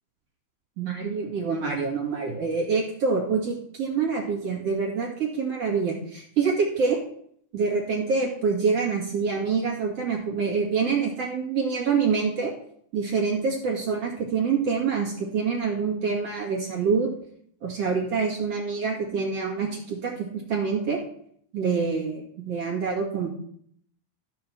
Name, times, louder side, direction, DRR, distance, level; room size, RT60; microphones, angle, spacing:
voice 1, 0.8-7.0 7.5-12.5 12.9-17.1 17.6-21.0 21.5-23.3, right 5 dB, 45° right, -3 dB, 2.1 m, -26 dB
15.0 x 5.6 x 6.2 m, 0.64 s
omnidirectional pair, 5.9 m